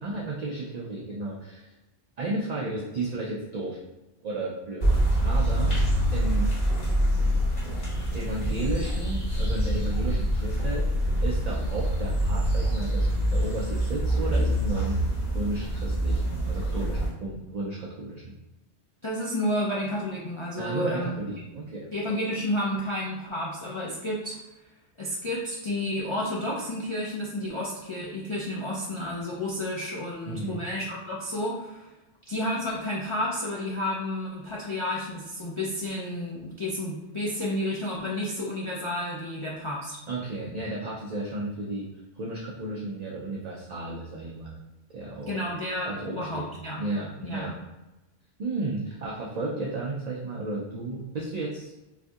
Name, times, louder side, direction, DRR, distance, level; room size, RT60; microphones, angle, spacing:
voice 1, 0.0-1.7 2.2-3.8 4.2-5.7 6.1-6.5 8.1-10.9 11.2-15.0 15.3-18.3 20.6-21.9 30.3-30.7 40.1-41.9 42.2-44.6 44.9-45.4 45.8-46.4 46.8-47.6 48.4-51.7, right 2 dB, 55° right, -4 dB, 0.4 m, -33 dB
sound 1, 4.8-17.1, equal, 35° left, 1.5 m, -25 dB
voice 2, 19.0-21.1 21.9-24.4 25.0-31.9 32.3-40.0 45.3-46.8 47.2-47.5, left 1 dB, 50° left, -6 dB, 0.3 m, -31 dB
4.2 x 2.6 x 2.3 m, 1.0 s
omnidirectional pair, 1.2 m